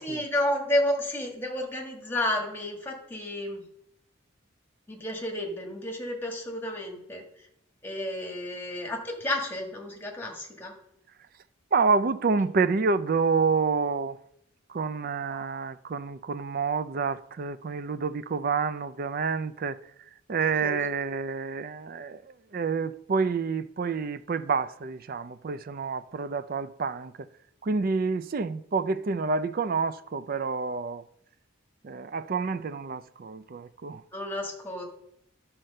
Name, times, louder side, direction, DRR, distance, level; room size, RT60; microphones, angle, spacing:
voice 1, 0.0-3.6 4.9-7.2 7.8-10.7 15.3-15.4 20.6-20.9 34.1-34.8, left 1 dB, 10° left, 1.6 m, -31 dB
voice 2, 11.7-14.2 14.7-19.8 20.3-27.3 27.6-31.0 31.8-34.0, right 4 dB, 45° right, 0.4 m, -28 dB
11.0 x 4.4 x 6.4 m
head